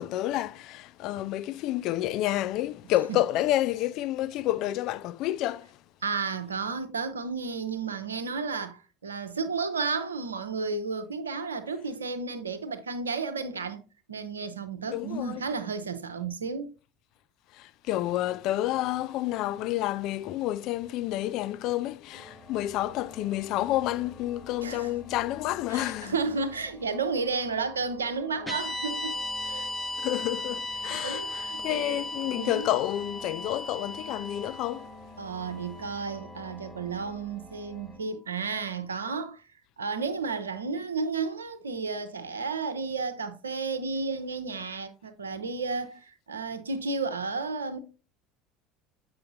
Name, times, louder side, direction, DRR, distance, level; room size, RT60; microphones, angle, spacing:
voice 1, 0.0-5.8 14.9-15.5 17.5-26.2 30.0-34.9, left 14 dB, 55° left, 0.3 m, -29 dB
voice 2, 6.0-13.8 14.1-16.7 24.6-24.9 25.7-29.7 30.8-32.0 32.3-32.7 35.2-39.4 39.8-47.8, right 4 dB, 80° right, 0.6 m, -32 dB
sound 1, 22.1-38.0, left 2 dB, 35° left, 3.1 m, -50 dB
sound 2, 28.5-36.8, left 2 dB, ahead, 1.0 m, -37 dB
7.6 x 5.5 x 2.6 m
figure-of-eight pair, 70°, 0 cm